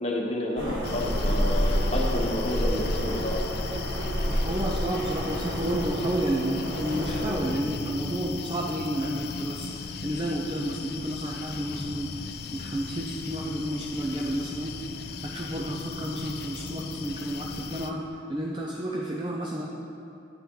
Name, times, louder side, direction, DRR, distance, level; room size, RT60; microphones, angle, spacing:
voice 1, 0.0-3.4, left 1 dB, 35° left, -2 dB, 1.2 m, -30 dB
sound 1, 0.6-7.3, equal, 75° right, 1.6 m, -29 dB
sound 2, 0.8-17.9, left 5 dB, 55° left, 0.4 m, -37 dB
voice 2, 4.4-19.7, right 1 dB, 25° right, -2 dB, 0.5 m, -31 dB
9.4 x 8.4 x 3.8 m, 2.9 s
head